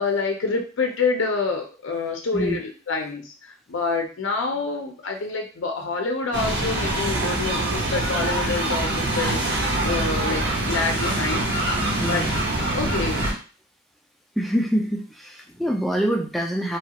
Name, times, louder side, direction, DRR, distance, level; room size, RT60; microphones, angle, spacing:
voice 1, 0.0-11.5 12.1-12.3 12.7-13.3, left 4 dB, 75° left, 3 dB, 0.5 m, -27 dB
sound 1, 6.3-13.3, right 1 dB, 60° right, 0.9 m, -24 dB
voice 2, 12.0-12.8 14.4-16.8, equal, ahead, 0 dB, 0.4 m, -25 dB
3.0 x 2.4 x 2.8 m, 0.36 s
head